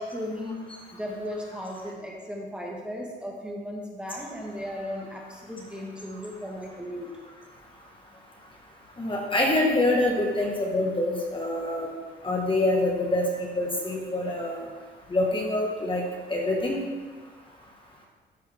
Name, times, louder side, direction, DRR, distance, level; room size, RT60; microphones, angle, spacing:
voice 1, 0.1-0.6 1.0-7.1, equal, 5° right, -2 dB, 1.5 m, -36 dB
voice 2, 9.0-11.9 12.2-13.3 13.6-14.6 15.1-16.0 16.3-16.8, left 2 dB, 25° left, -1 dB, 1.5 m, -25 dB
12.5 x 4.5 x 3.5 m, 1.4 s
cardioid pair, 90°, 20 cm